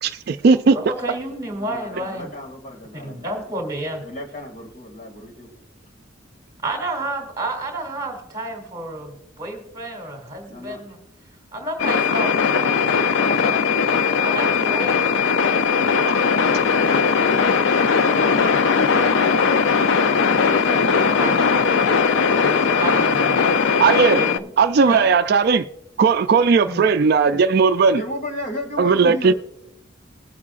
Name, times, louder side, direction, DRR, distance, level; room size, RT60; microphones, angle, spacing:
voice 1, 0.0-0.8 23.8-24.2 24.6-25.7 26.0-28.0 28.8-29.3, right 5 dB, 50° right, 0.3 m, -16 dB
voice 2, 0.7-2.3 2.9-4.1 6.6-11.0 11.5-12.9 13.4-13.6 14.2-14.9 15.5-15.7 18.8-19.6 20.2-21.7 22.7-23.5 24.2-24.5 24.8-25.1 26.7-26.8, right 1 dB, 20° right, 2.6 m, -31 dB
voice 3, 1.6-3.5 4.0-5.5 10.5-10.8 13.2-13.6 21.7-22.3 27.9-29.3, left 1 dB, 40° left, 2.3 m, -35 dB
sound 1, 11.8-24.4, left 5 dB, 70° left, 0.5 m, -19 dB
20.0 x 8.4 x 2.5 m
head